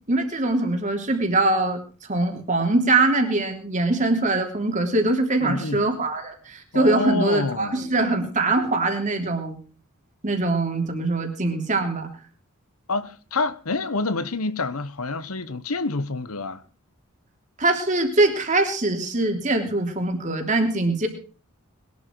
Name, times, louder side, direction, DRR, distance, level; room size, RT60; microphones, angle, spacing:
voice 1, 0.1-1.8 2.1-9.6 10.2-12.1 17.6-21.1, right 2 dB, 35° right, 3.2 m, -22 dB
voice 2, 5.4-5.9 6.7-7.8 12.9-16.6, left 3 dB, 85° left, 1.1 m, -27 dB
21.5 x 12.0 x 4.7 m
head